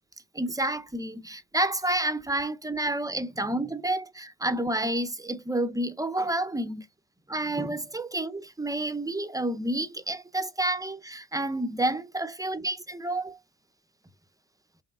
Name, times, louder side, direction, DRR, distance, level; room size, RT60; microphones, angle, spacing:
voice 1, 0.3-6.9 7.3-13.4, right 1 dB, 10° right, 0.5 m, -29 dB
5.1 x 3.2 x 2.3 m
cardioid pair, 90°, 30 cm